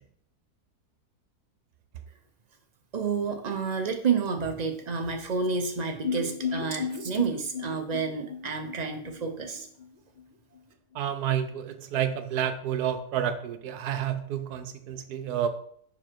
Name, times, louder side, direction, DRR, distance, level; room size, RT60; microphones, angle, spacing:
voice 1, 2.9-9.7, right 5 dB, 55° right, 4 dB, 0.4 m, -29 dB
sound 1, 6.0-9.9 10.2-10.3 10.6-10.7, left 6 dB, 60° left, 0.4 m, -35 dB
voice 2, 10.9-15.5, right 9 dB, 80° right, 9 dB, 1.2 m, -30 dB
5.4 x 5.0 x 4.5 m, 0.63 s
omnidirectional pair, 1.7 m